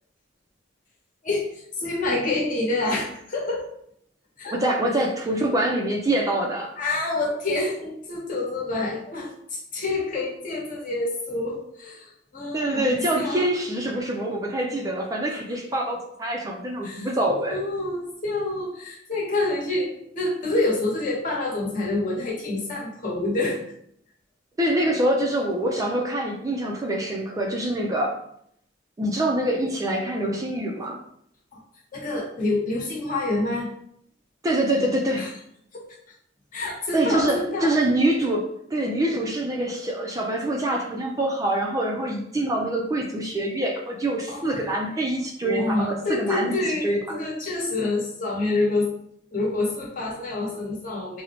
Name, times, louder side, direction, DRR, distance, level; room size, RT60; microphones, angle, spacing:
voice 1, 1.8-3.7 4.4-4.6 6.8-13.5 16.8-17.1 17.5-23.6 31.9-33.7 35.2-35.3 35.7-35.8 36.5-37.7 44.3-44.6 45.4-48.9 49.3-51.2, left 2 dB, 45° left, -4 dB, 1.0 m, -27 dB
voice 2, 4.5-6.7 12.5-17.6 24.6-28.2 29.0-31.0 34.4-35.3 36.9-47.2, right 1 dB, 20° right, 0 dB, 0.3 m, -25 dB
3.8 x 2.0 x 2.8 m, 0.71 s
head